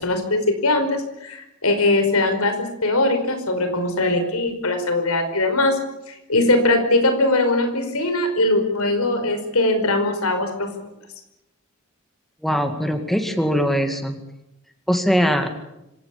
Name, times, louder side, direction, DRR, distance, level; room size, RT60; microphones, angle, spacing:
voice 1, 0.0-10.7, left 2 dB, 85° left, 7 dB, 5.3 m, -21 dB
voice 2, 12.4-14.2 14.9-15.5, equal, ahead, 6 dB, 2.2 m, -21 dB
26.5 x 17.0 x 8.7 m, 0.89 s
head